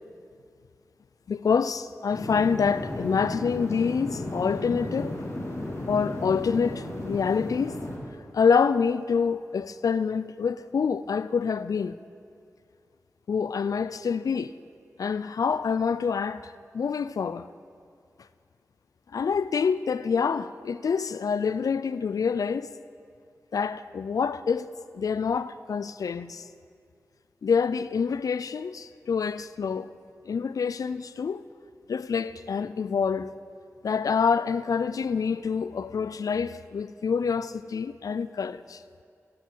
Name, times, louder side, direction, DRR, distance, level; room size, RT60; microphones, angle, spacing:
voice 1, 1.3-5.1 5.9-7.8 8.3-12.0 13.3-14.5 15.0-17.5 19.1-22.7 23.5-24.7 24.9-26.5 27.4-29.9 30.3-31.4 31.9-33.3 33.8-38.8, left 6 dB, 80° left, 0.3 m, -26 dB
sound 1, 2.1-8.0, left 1 dB, 55° left, 2.1 m, -34 dB
12.5 x 7.6 x 6.1 m
cardioid pair, 55°, 6 cm